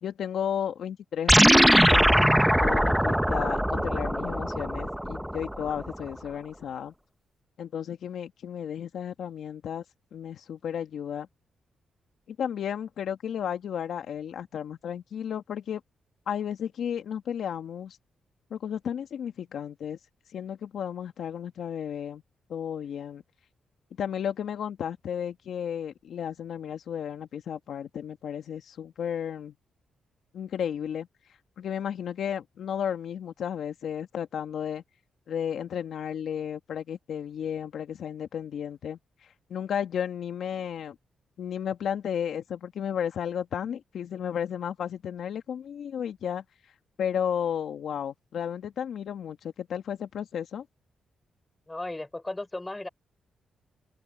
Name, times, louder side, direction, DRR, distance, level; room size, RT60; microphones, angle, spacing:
voice 1, 0.0-2.3 2.6-6.9 7.6-9.8 10.1-11.3 12.3-15.8 16.3-18.0 18.5-20.0 20.3-22.2 22.5-23.2 24.0-29.5 30.3-31.1 31.6-34.8 35.3-41.0 41.4-46.4 47.0-50.7, left 8 dB, 75° left, 1.8 m, -33 dB
sound 1, 1.3-5.9, equal, 5° right, 0.9 m, -21 dB
voice 2, 51.7-52.9, left 2 dB, 20° left, 5.9 m, -35 dB
open air
supercardioid pair, 60°, 0 cm